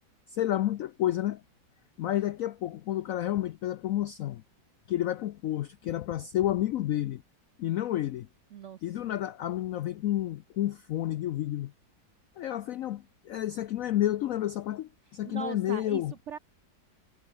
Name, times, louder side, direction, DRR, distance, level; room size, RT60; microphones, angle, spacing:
voice 1, 0.3-1.4 2.0-4.4 4.9-7.2 7.6-8.3 8.8-11.7 12.4-16.1, left 13 dB, 80° left, 0.7 m, -30 dB
voice 2, 8.5-9.0 15.2-16.4, right 7 dB, 70° right, 0.7 m, -40 dB
omnidirectional pair, 2.0 m